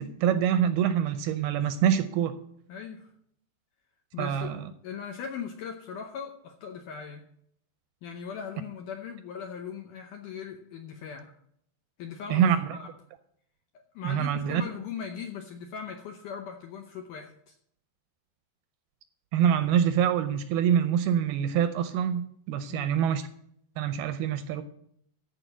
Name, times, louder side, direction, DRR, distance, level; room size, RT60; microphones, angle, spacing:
voice 1, 0.0-2.3 4.2-4.7 12.3-12.8 14.0-14.6 19.3-23.3 23.8-24.6, right 9 dB, 80° right, 2.4 m, -25 dB
voice 2, 2.7-3.1 4.1-4.5 4.8-7.2 8.0-11.3 12.0-12.5 12.7-12.9 13.7-17.6 22.7-22.9, left 7 dB, 75° left, 1.9 m, -39 dB
14.0 x 5.0 x 7.9 m
omnidirectional pair, 4.8 m